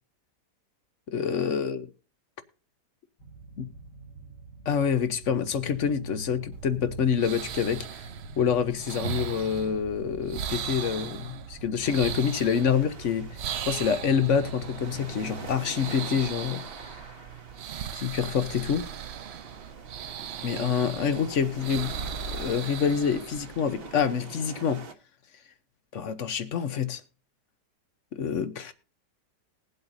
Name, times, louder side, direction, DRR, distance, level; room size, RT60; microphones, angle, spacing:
voice 1, 1.1-1.9 3.6-3.7 4.7-8.0 8.4-13.4 13.6-16.9 17.9-18.8 20.4-21.9 22.3-24.8 25.9-27.0 28.1-28.7, left 7 dB, 55° left, 0.9 m, -27 dB
sound 1, 3.2-15.6, right 3 dB, 80° left, 2.7 m, -44 dB
sound 2, 6.5-24.1, right 8 dB, 70° right, 0.6 m, -38 dB
sound 3, 11.8-24.9, right 4 dB, 40° right, 1.2 m, -45 dB
20.5 x 7.9 x 2.6 m
omnidirectional pair, 1.8 m